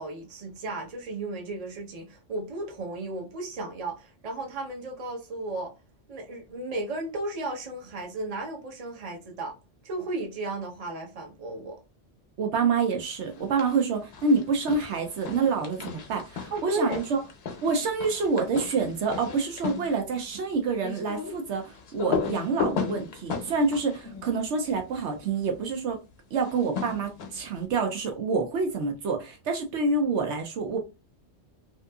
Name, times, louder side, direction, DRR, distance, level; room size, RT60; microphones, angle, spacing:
voice 1, 0.0-5.8 6.1-9.5 9.8-11.8 16.5-17.0, right 2 dB, 40° right, 0.8 m, -34 dB
voice 2, 12.4-17.2 17.6-26.0 26.3-30.8, right 4 dB, 75° right, 0.9 m, -27 dB
sound 1, 13.3-13.8 14.1-25.1 26.4-27.6, left 5 dB, 65° left, 0.9 m, -35 dB
2.7 x 2.5 x 2.2 m
omnidirectional pair, 1.2 m